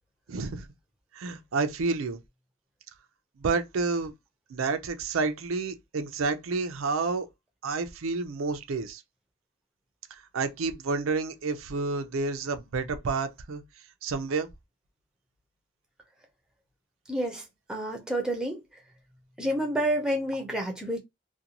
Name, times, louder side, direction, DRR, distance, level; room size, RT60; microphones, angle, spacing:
voice 1, 0.3-0.7 1.1-2.2 3.4-4.1 4.5-7.3 7.6-9.0 10.1-13.6 14.0-14.5, right 4 dB, 75° right, 0.5 m, -29 dB
voice 2, 17.1-17.4 17.7-18.6 19.4-21.0, right 1 dB, 5° right, 0.5 m, -29 dB
2.5 x 2.2 x 2.8 m
head